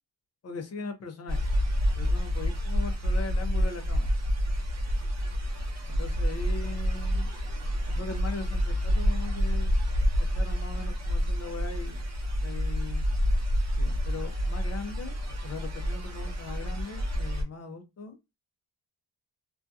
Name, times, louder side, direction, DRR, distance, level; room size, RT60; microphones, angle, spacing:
voice 1, 0.4-1.5 2.0-4.1 5.9-7.3 7.9-9.7 10.3-12.0 12.4-13.0 13.8-15.1 15.4-18.2, left 3 dB, 40° left, 6 dB, 0.5 m, -40 dB
sound 1, 1.3-17.4, equal, 40° right, 0.7 m, -28 dB
2.6 x 2.3 x 2.3 m, 0.24 s
wide cardioid pair, 160°, 42 cm